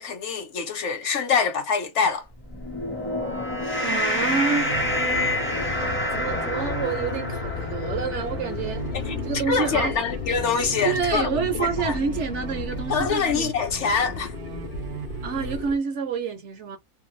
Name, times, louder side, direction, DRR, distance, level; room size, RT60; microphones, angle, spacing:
voice 1, 0.0-2.2 8.9-9.2 9.5-11.3 11.6-11.9 12.9-14.3, left 5 dB, 55° left, 1.0 m, -25 dB
sound 1, 2.4-9.0, left 1 dB, 15° left, 0.5 m, -28 dB
voice 2, 3.8-4.7 6.1-8.8 9.2-9.9 10.8-13.5 15.2-16.8, right 6 dB, 65° right, 0.7 m, -28 dB
sound 2, 4.2-15.6, right 9 dB, 85° right, 1.1 m, -39 dB
sound 3, 4.7-15.8, left 5 dB, 90° left, 0.4 m, -34 dB
2.7 x 2.2 x 3.0 m
omnidirectional pair, 1.6 m